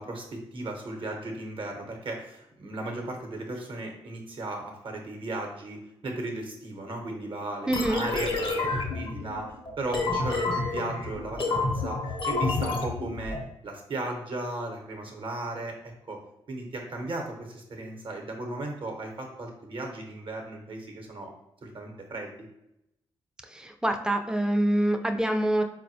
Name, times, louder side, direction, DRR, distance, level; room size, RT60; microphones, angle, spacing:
voice 1, 0.0-16.2 16.5-21.3 21.6-22.5, right 2 dB, 55° right, 2 dB, 0.8 m, -36 dB
sound 1, 7.7-13.4, left 3 dB, 50° left, 0.6 m, -29 dB
voice 2, 7.7-8.0 23.5-25.6, right 1 dB, 5° right, 5 dB, 0.4 m, -25 dB
4.0 x 2.1 x 2.7 m, 0.85 s
supercardioid pair, 45°, 11 cm